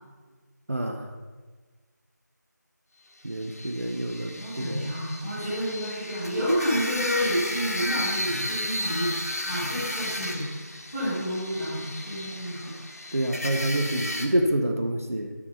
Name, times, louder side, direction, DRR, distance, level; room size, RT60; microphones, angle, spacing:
voice 1, 0.7-1.1 3.2-4.9 13.1-15.3, right 1 dB, 50° right, 5 dB, 0.8 m, -27 dB
sound 1, 3.3-14.3, left 1 dB, 55° left, 1.2 m, -34 dB
voice 2, 4.4-9.1 9.4-10.4 10.9-12.7, equal, 10° right, -15 dB, 1.9 m, -29 dB
12.0 x 4.6 x 5.5 m, 1.4 s
figure-of-eight pair, 170°, 10 cm